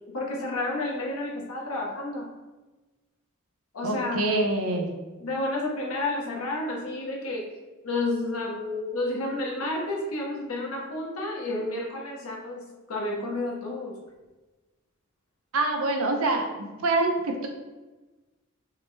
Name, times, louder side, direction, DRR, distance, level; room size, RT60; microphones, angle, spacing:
voice 1, 0.1-2.3 3.7-4.3 5.2-7.5 7.8-14.0, left 2 dB, 80° left, -2 dB, 1.0 m, -31 dB
voice 2, 3.8-4.9 15.5-16.5 16.8-17.5, right 2 dB, 80° right, 3 dB, 0.7 m, -25 dB
5.5 x 2.2 x 3.2 m, 1.2 s
head